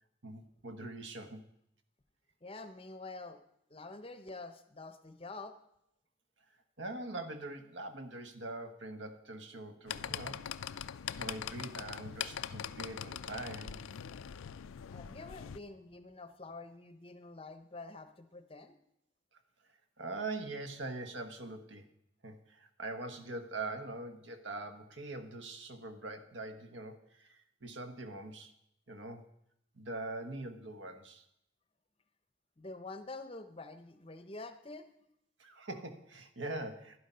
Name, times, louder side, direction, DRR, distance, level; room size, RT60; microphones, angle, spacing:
voice 1, 0.2-1.4 6.8-13.8 20.0-21.9 22.2-28.5 28.9-29.3 29.7-31.2 35.4-37.0, right 2 dB, 65° right, 8 dB, 1.2 m, -43 dB
voice 2, 2.4-3.4 3.7-5.6 14.9-18.8 32.6-34.9, left 3 dB, 25° left, 10 dB, 0.7 m, -47 dB
sound 1, 9.9-15.6, left 9 dB, 85° left, 0.4 m, -42 dB
11.5 x 11.0 x 5.6 m, 0.77 s
head